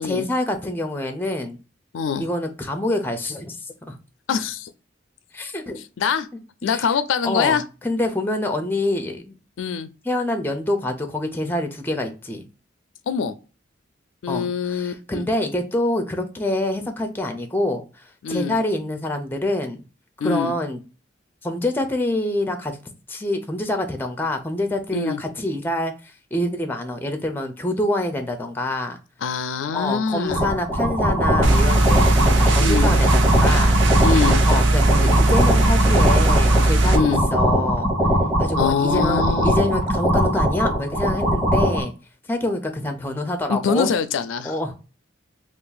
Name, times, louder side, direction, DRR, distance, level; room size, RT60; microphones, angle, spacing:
voice 1, 0.0-1.6 2.1-4.0 5.3-5.8 6.6-6.9 7.2-9.3 10.0-12.5 14.3-19.8 20.2-20.8 21.4-22.8 23.1-29.0 29.7-33.8 34.5-37.9 38.4-41.9 42.3-43.9 44.4-44.7, left 1 dB, 10° left, 0.5 m, -26 dB
voice 2, 1.9-2.2 4.3-4.7 6.0-6.3 6.6-7.6 9.6-9.9 13.1-13.3 14.2-15.3 18.2-18.6 20.2-20.5 24.9-25.2 29.2-30.4 32.6-32.9 34.0-34.4 36.9-37.2 38.6-39.6 43.5-44.6, left 6 dB, 85° left, 0.4 m, -24 dB
sound 1, 30.3-41.8, equal, 10° right, 1.0 m, -21 dB
sound 2, 31.4-37.0, right 2 dB, 80° right, 0.6 m, -17 dB
2.6 x 2.4 x 3.8 m
head